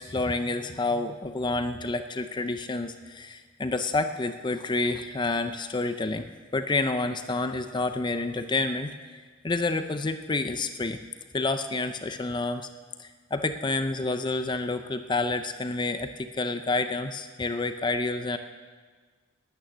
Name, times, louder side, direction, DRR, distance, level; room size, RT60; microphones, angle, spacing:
voice 1, 0.0-8.9 9.4-11.0 11.3-12.7 13.0-18.4, left 3 dB, 25° left, 9 dB, 0.5 m, -29 dB
12.5 x 8.9 x 9.6 m, 1.5 s
head